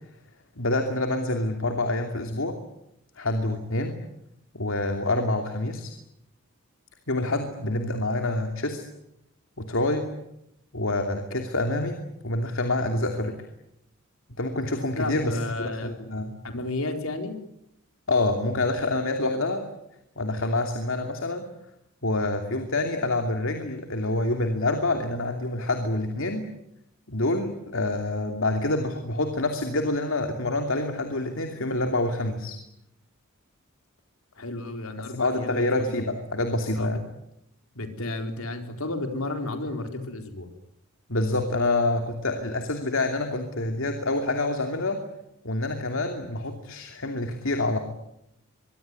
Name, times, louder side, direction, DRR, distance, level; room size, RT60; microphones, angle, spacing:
voice 1, 0.6-2.6 3.2-3.9 4.5-5.9 7.1-8.8 9.6-10.1 10.7-13.4 14.4-16.4 18.1-19.6 20.2-21.5 22.0-26.5 27.1-32.6 35.2-37.0 41.1-45.0 45.4-47.8, left 2 dB, 70° left, 5 dB, 2.8 m, -27 dB
voice 2, 14.9-15.9 16.4-17.4 34.3-36.0 36.7-36.9 37.7-40.5, left 2 dB, 85° left, 5 dB, 4.3 m, -32 dB
24.5 x 23.5 x 9.7 m, 0.82 s
head